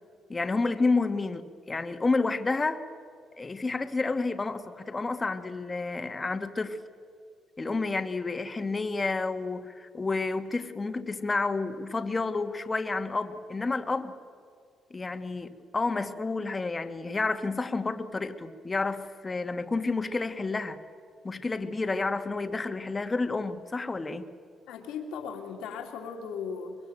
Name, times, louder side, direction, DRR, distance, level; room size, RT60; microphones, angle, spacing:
voice 1, 0.3-2.9 3.4-6.8 7.6-14.1 14.9-20.8 21.2-24.3, left 3 dB, 25° left, 9 dB, 1.5 m, -30 dB
voice 2, 24.7-26.8, left 6 dB, 90° left, 3 dB, 2.7 m, -37 dB
23.5 x 23.0 x 8.8 m, 2.3 s
cardioid pair, 90°, 0 cm